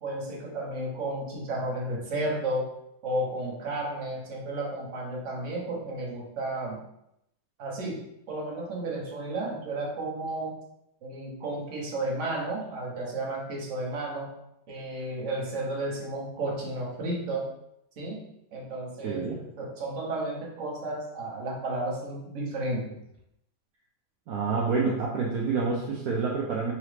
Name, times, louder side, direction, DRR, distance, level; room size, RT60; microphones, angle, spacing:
voice 1, 0.0-2.7 3.0-6.8 7.6-8.0 8.3-10.5 11.0-14.3 14.7-17.5 18.0-23.0, right 2 dB, 50° right, -2 dB, 1.1 m, -33 dB
voice 2, 19.0-19.4 24.3-26.7, right 4 dB, 70° right, -3 dB, 0.9 m, -28 dB
3.9 x 3.0 x 3.2 m, 0.80 s
omnidirectional pair, 2.0 m